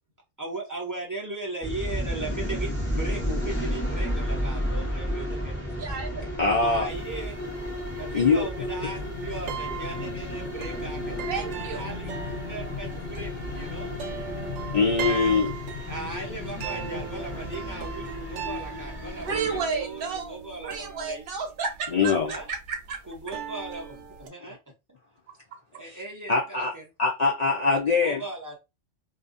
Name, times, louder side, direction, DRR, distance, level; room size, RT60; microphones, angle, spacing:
voice 1, 0.4-5.6 6.5-7.4 8.0-13.9 15.0-15.5 15.9-21.3 21.9-22.0 22.2-22.5 23.1-24.6 25.7-26.8 27.9-28.6, right 2 dB, 25° right, -3 dB, 0.4 m, -38 dB
sound 1, 1.6-19.6, equal, 10° left, 0.9 m, -33 dB
voice 2, 5.8-6.2 11.3-11.9 19.2-20.4 20.6-23.0, right 5 dB, 55° right, 3 dB, 0.8 m, -32 dB
voice 3, 6.4-6.9 8.1-8.5 14.7-15.5 21.9-22.3 26.3-26.7 27.0-28.2, left 4 dB, 65° left, -3 dB, 0.4 m, -22 dB
sound 2, 6.9-24.3, right 8 dB, 80° right, 0.9 m, -39 dB
sound 3, 7.4-19.9 20.3-20.5, left 6 dB, 85° left, 1.0 m, -40 dB
2.4 x 2.3 x 2.5 m, 0.25 s
omnidirectional pair, 1.3 m